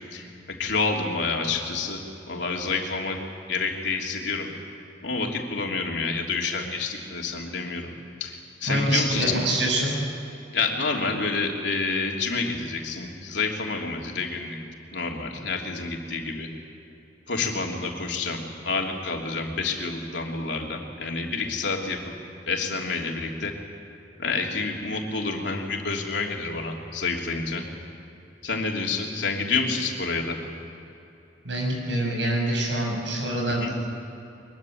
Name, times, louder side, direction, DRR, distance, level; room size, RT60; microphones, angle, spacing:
voice 1, 0.0-3.2 3.5-4.5 5.0-7.9 8.2-9.2 10.5-14.6 14.9-16.5 17.3-22.0 22.5-23.5 24.2-27.6 28.4-30.4 33.6-33.7, left 4 dB, 75° left, 0 dB, 3.3 m, -28 dB
voice 2, 8.7-9.9 31.4-33.7, right 1 dB, 80° right, 0 dB, 7.9 m, -25 dB
23.5 x 22.5 x 8.1 m, 2.9 s
head